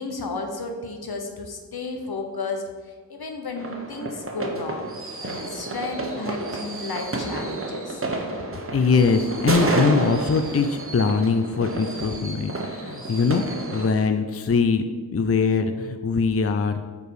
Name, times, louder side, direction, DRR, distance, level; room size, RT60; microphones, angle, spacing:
voice 1, 0.0-4.9 5.2-8.0, left 3 dB, 75° left, 4 dB, 1.1 m, -33 dB
sound 1, 3.6-13.9, right 2 dB, 35° right, 1.1 m, -30 dB
voice 2, 8.7-13.4 13.7-14.9 15.1-16.9, left 5 dB, 40° left, 8 dB, 0.5 m, -22 dB
7.7 x 4.7 x 4.8 m, 1.5 s
wide cardioid pair, 75°, 38 cm